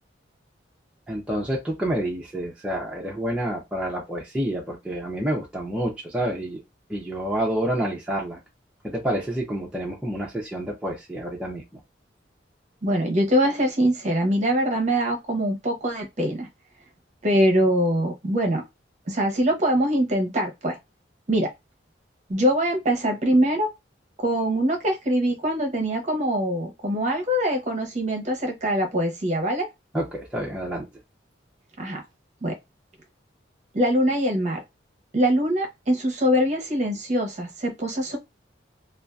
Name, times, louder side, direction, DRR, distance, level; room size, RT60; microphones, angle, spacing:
voice 1, 1.1-6.6 6.9-8.4 8.8-11.8 29.9-30.9, right 1 dB, 5° right, 0.5 m, -28 dB
voice 2, 12.8-16.5 17.2-18.6 19.1-20.8 21.3-21.5 22.3-23.7 24.2-29.7 31.8-32.0 32.4-32.5 33.7-34.6 35.1-38.2, equal, 40° right, 0.8 m, -23 dB
2.6 x 2.3 x 2.3 m
head